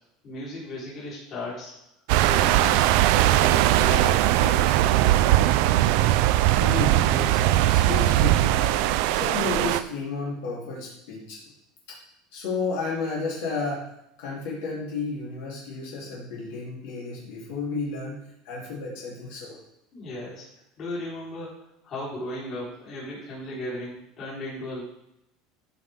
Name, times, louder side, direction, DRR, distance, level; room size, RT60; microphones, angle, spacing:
voice 1, 0.2-1.7 2.2-5.5 19.9-20.5 20.8-24.8, left 1 dB, 30° left, -7 dB, 4.0 m, -36 dB
sound 1, 2.1-9.8, right 14 dB, 55° right, 0.4 m, -20 dB
voice 2, 6.6-8.8 9.1-11.4 11.9-12.0 12.3-13.9 14.2-18.2 18.4-19.6, left 3 dB, 65° left, -5 dB, 3.3 m, -32 dB
14.0 x 5.8 x 3.7 m, 0.82 s
cardioid pair, 180°, 0 cm